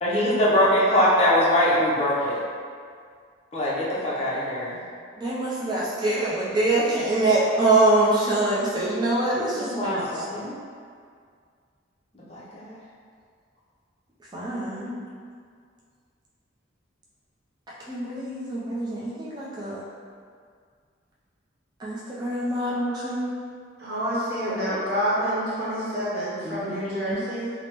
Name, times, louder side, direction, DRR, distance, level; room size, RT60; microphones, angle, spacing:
voice 1, 0.0-2.4 3.5-4.8 9.5-10.5 12.3-12.8 14.8-15.0 24.4-24.8 26.4-27.2, left 1 dB, 30° left, -7 dB, 0.6 m, -23 dB
voice 2, 5.2-10.2 14.3-14.8 17.9-19.8 21.8-23.3, right 2 dB, 20° right, -7 dB, 0.4 m, -24 dB
voice 3, 23.8-27.5, equal, 55° right, -8 dB, 0.8 m, -28 dB
3.3 x 2.0 x 2.9 m, 2.1 s
head